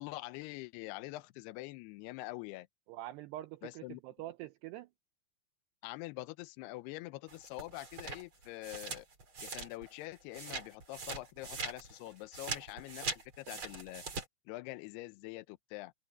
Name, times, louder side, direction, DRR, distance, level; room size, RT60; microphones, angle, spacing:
voice 1, 0.0-2.7 3.6-4.0 5.8-9.1 9.4-14.0 14.5-15.9, left 19 dB, 85° left, 2.4 m, -45 dB
voice 2, 2.9-4.9, right 14 dB, 80° right, 2.5 m, -45 dB
sound 1, 7.3-10.0 10.3-14.2, right 4 dB, 30° right, 3.6 m, -42 dB
omnidirectional pair, 5.4 m